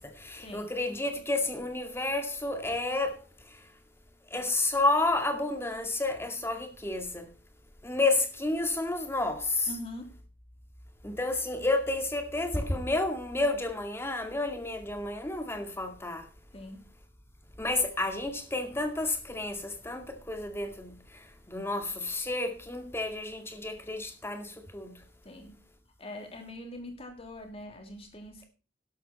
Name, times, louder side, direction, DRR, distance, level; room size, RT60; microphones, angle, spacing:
voice 1, 0.3-3.1 4.3-7.2 7.8-9.7 11.0-16.2 17.6-19.6 19.9-20.0 20.3-20.9 21.5-24.5 24.7-24.9, left 2 dB, 15° left, 2.2 m, -30 dB
voice 2, 9.7-10.1 16.5-16.8 25.2-25.6 26.0-28.4, left 1 dB, 35° left, 3.1 m, -43 dB
12.0 x 11.5 x 4.3 m
head